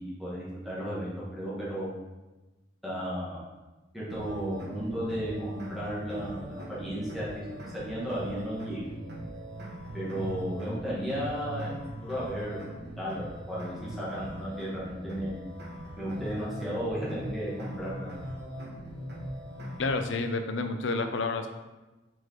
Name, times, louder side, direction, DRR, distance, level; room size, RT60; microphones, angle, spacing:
voice 1, 0.0-1.9 2.8-3.4 3.9-8.9 9.9-12.6 13.0-15.5 16.0-18.1, equal, ahead, -8 dB, 1.8 m, -34 dB
sound 1, 4.1-20.1, equal, 55° right, 1.3 m, -41 dB
voice 2, 19.8-21.5, left 3 dB, 65° left, 7 dB, 0.6 m, -29 dB
4.8 x 4.4 x 4.6 m, 1.1 s
head